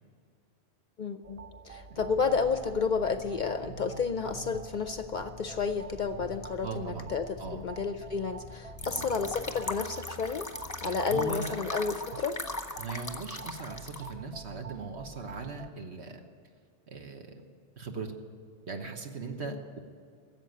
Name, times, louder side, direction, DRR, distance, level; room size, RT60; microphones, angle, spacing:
voice 1, 1.0-10.5 10.8-12.4 19.5-19.6, left 5 dB, 50° left, 10 dB, 0.6 m, -31 dB
sound 1, 1.2-15.7, right 5 dB, 50° right, 0.4 m, -47 dB
sound 2, 2.0-9.7, left 3 dB, 30° right, 1.2 m, -50 dB
voice 2, 6.6-7.1 7.4-7.6 9.0-9.1 11.1-11.6 12.8-16.2 16.9-17.3 17.8-18.1 18.7-19.8, right 4 dB, 70° right, 4 dB, 1.5 m, -39 dB
sound 3, 8.8-14.1, left 2 dB, 15° left, 0.9 m, -39 dB
15.5 x 7.7 x 9.2 m, 2.3 s
omnidirectional pair, 1.2 m